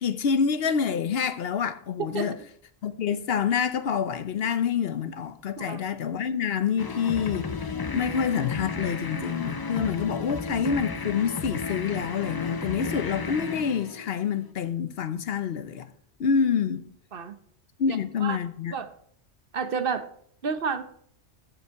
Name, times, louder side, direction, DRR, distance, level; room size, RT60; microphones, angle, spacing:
voice 1, 0.0-2.4 2.8-15.9 16.2-16.9 17.8-18.7, left 7 dB, 65° left, 0.9 m, -27 dB
sound 1, 6.8-14.5, left 4 dB, 35° left, 0.3 m, -33 dB
voice 2, 17.9-18.4 18.7-18.9 19.5-20.1 20.4-20.8, right 6 dB, 55° right, 0.9 m, -31 dB
13.5 x 5.4 x 4.6 m
omnidirectional pair, 1.1 m